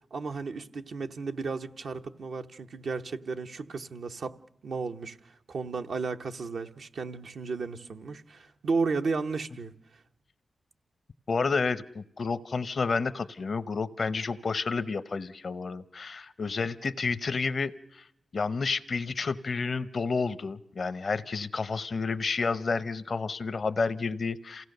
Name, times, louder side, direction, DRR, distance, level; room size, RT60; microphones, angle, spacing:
voice 1, 0.1-4.4 4.6-9.7, right 4 dB, 75° right, 0.9 m, -33 dB
voice 2, 11.3-18.0 18.3-24.6, left 4 dB, 60° left, 0.7 m, -30 dB
27.5 x 16.5 x 6.6 m
cardioid pair, 45°, 0 cm